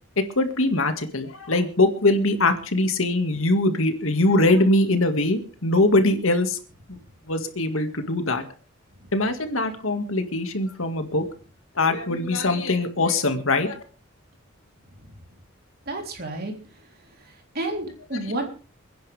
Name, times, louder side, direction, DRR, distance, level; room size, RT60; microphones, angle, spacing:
voice 1, 0.2-6.6 6.9-7.0 7.3-8.4 9.1-11.2 11.8-13.8 18.2-18.3, left 2 dB, 75° left, 7 dB, 2.1 m, -22 dB
voice 2, 15.9-16.5 17.6-18.5, right 2 dB, 45° right, 2 dB, 3.6 m, -30 dB
28.0 x 10.5 x 3.5 m, 0.37 s
head